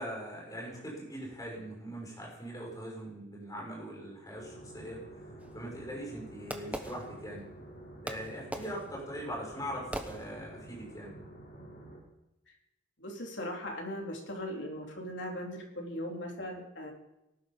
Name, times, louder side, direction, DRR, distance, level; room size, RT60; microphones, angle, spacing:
voice 1, 0.0-5.2 5.5-7.5 8.0-11.1, equal, 20° left, -2 dB, 6.5 m, -41 dB
sound 1, 4.3-12.0, right 1 dB, 65° left, 7.0 m, -49 dB
Fireworks, 5.4-7.6 8.1-10.8, right 1 dB, 10° right, 1.2 m, -42 dB
voice 2, 13.0-16.9, equal, 80° left, 0 dB, 3.7 m, -39 dB
18.5 x 11.5 x 5.3 m, 0.91 s
head